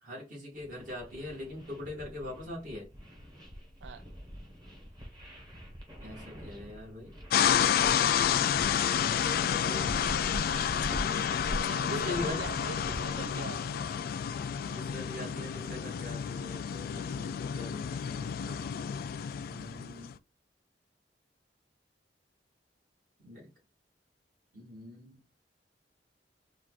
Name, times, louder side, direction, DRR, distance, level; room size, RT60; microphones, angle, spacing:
voice 1, 0.0-2.9 6.0-7.1 9.2-9.9 11.8-12.4 14.7-18.6 19.5-20.1 23.2-23.5 24.5-25.2, left 2 dB, 50° right, 2.1 m, -42 dB
sound 1, 0.5-13.4, equal, 25° right, 1.3 m, -44 dB
sound 2, 7.3-20.1, left 8 dB, 55° left, 0.3 m, -30 dB
voice 2, 11.6-13.9, right 6 dB, 70° right, 0.3 m, -43 dB
4.4 x 2.5 x 3.9 m
head